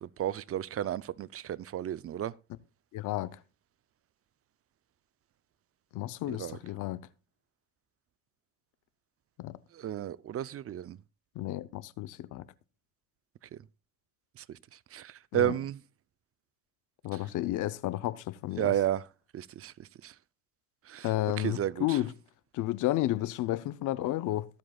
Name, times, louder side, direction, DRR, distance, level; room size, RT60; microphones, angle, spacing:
voice 1, 0.0-2.3 6.4-6.6 9.7-11.0 14.4-14.5 14.9-15.8 18.6-19.1 19.3-19.7 20.0-20.1 20.9-21.1 21.4-22.0, right 11 dB, 50° right, 0.5 m, -32 dB
voice 2, 2.9-3.4 5.9-7.1 9.4-9.6 11.4-12.4 15.3-15.5 17.0-18.7 21.0-22.1 22.5-24.5, left 15 dB, 90° left, 0.7 m, -32 dB
22.5 x 7.8 x 2.3 m
cardioid pair, 90°, 30 cm